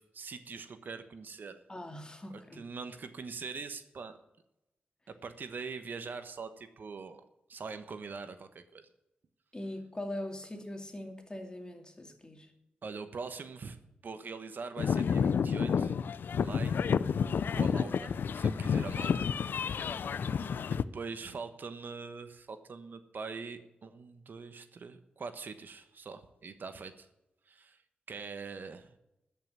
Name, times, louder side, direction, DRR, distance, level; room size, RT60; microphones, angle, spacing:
voice 1, 0.0-1.6 2.3-4.2 5.1-7.2 7.5-8.8 12.8-13.8 14.0-15.9 16.3-16.8 17.1-17.3 17.5-19.3 20.0-20.3 20.7-27.1 27.5-27.8 28.1-29.0, right 4 dB, 65° right, 1.1 m, -43 dB
voice 2, 1.7-2.6 9.5-12.5 19.9-20.6, left 1 dB, 25° left, 2.5 m, -42 dB
sound 1, 14.8-20.8, left 6 dB, 75° left, 0.5 m, -30 dB
13.5 x 5.7 x 9.5 m
cardioid pair, 60°, 3 cm